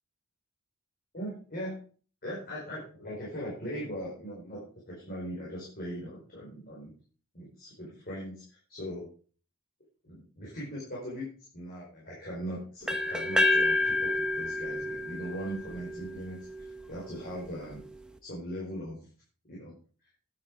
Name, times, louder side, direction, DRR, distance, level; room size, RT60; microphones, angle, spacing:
voice 1, 1.1-1.8 2.2-6.9 7.3-9.1 10.0-17.8 18.2-19.1 19.5-19.8, equal, 40° left, -6 dB, 4.9 m, -40 dB
sound 1, 12.9-16.8, left 2 dB, 5° right, 1.0 m, -29 dB
10.5 x 9.5 x 4.8 m, 0.41 s
head